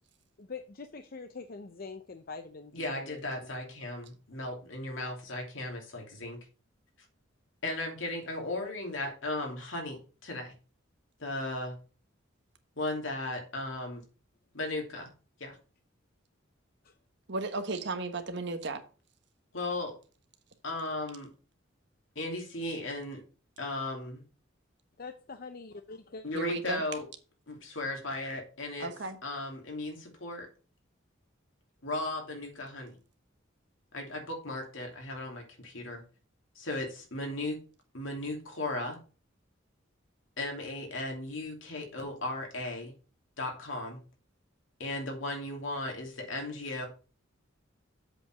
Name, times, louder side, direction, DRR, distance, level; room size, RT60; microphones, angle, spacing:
voice 1, 0.4-3.5 5.0-5.1 16.8-16.9 25.0-26.2, left 4 dB, 50° left, 0.6 m, -44 dB
voice 2, 2.7-6.4 7.6-10.5 11.2-11.7 12.8-14.0 14.5-15.1 15.4-15.6 19.5-19.9 20.6-21.3 22.1-23.2 23.6-24.2 26.2-27.1 27.5-28.9 29.2-30.5 31.8-33.0 33.9-36.0 36.5-37.6 37.9-39.0 40.4-42.9 43.4-44.0 44.8-46.9, left 2 dB, 85° left, 2.9 m, -36 dB
voice 3, 17.3-18.8 26.3-26.8 28.8-29.2, right 3 dB, 65° right, 1.3 m, -34 dB
7.8 x 5.2 x 5.9 m
head